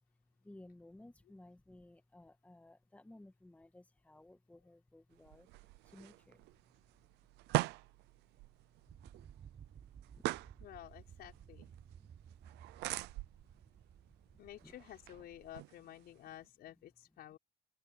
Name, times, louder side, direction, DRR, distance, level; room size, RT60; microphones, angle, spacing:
voice 1, 0.4-6.5 10.1-10.3 12.0-12.1 12.7-12.8 13.5-13.7 14.1-14.2 14.6-14.7, left 1 dB, 10° left, 1.9 m, -58 dB
sound 1, 5.1-16.5, right 19 dB, 90° right, 0.7 m, -44 dB
sound 2, 8.9-15.6, right 8 dB, 45° right, 7.2 m, -57 dB
voice 2, 10.6-11.7 14.4-17.4, left 12 dB, 70° left, 5.4 m, -52 dB
open air
cardioid pair, 110°, 17 cm